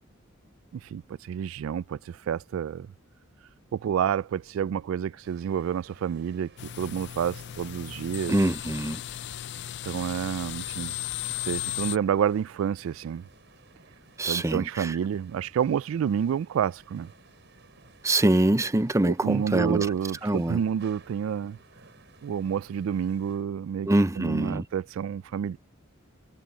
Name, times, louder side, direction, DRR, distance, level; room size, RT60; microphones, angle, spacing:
voice 1, 0.9-2.9 3.7-8.4 9.8-10.9 11.4-13.2 14.2-17.1 19.1-21.6 22.2-23.9 24.2-25.6, right 8 dB, 80° right, 0.3 m, -29 dB
sound 1, 5.2-23.5, right 3 dB, 60° right, 6.5 m, -56 dB
sound 2, 6.6-12.0, left 13 dB, 55° left, 0.4 m, -36 dB
voice 2, 8.3-9.0 14.2-15.0 18.0-19.8 20.2-20.6 23.9-24.7, right 1 dB, 15° right, 0.5 m, -24 dB
head